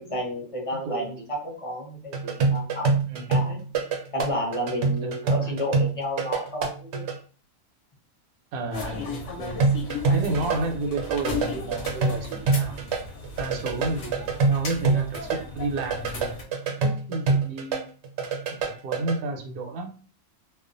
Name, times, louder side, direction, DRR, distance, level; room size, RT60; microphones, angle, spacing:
voice 1, 0.0-2.9 3.3-3.6 4.1-7.1, equal, 35° left, -3 dB, 0.5 m, -31 dB
voice 2, 0.7-1.2 3.1-3.4 5.0-5.5 8.5-9.6 10.1-12.8 13.4-16.5 16.8-17.9 18.6-19.9, right 2 dB, 90° right, 4 dB, 1.1 m, -32 dB
sound 1, 2.1-7.2 9.6-13.0 13.2-17.8 18.0-19.2, right 4 dB, 65° right, 0.7 m, -25 dB
sound 2, 8.7-16.4, left 3 dB, 60° left, 0.8 m, -36 dB
2.4 x 2.2 x 2.5 m, 0.39 s
omnidirectional pair, 1.5 m